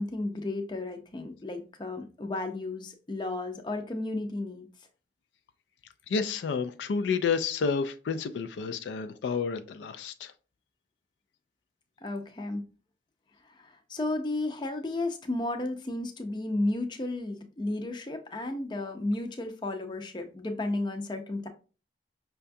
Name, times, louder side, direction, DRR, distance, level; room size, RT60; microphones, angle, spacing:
voice 1, 0.0-4.7 12.0-12.6 13.5-21.5, left 2 dB, 25° left, 0.5 m, -33 dB
voice 2, 6.1-10.3, left 5 dB, 90° left, 0.3 m, -30 dB
5.5 x 2.3 x 2.5 m
head